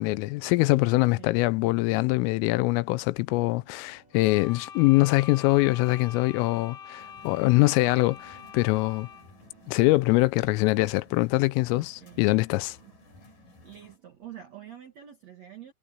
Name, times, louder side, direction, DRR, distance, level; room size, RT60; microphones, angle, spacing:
voice 1, 0.0-9.1 9.7-12.8, left 22 dB, 85° left, 3.2 m, -23 dB
sound 1, 1.1-14.8, right 8 dB, 50° right, 7.7 m, -64 dB
sound 2, 4.1-9.4, left 7 dB, 70° left, 6.8 m, -44 dB
sound 3, 7.0-14.0, left 2 dB, 40° left, 7.1 m, -55 dB
voice 2, 11.7-12.3 12.8-12.9 13.2-13.3 13.6-15.7, right 11 dB, 80° right, 1.5 m, -46 dB
omnidirectional pair, 5.8 m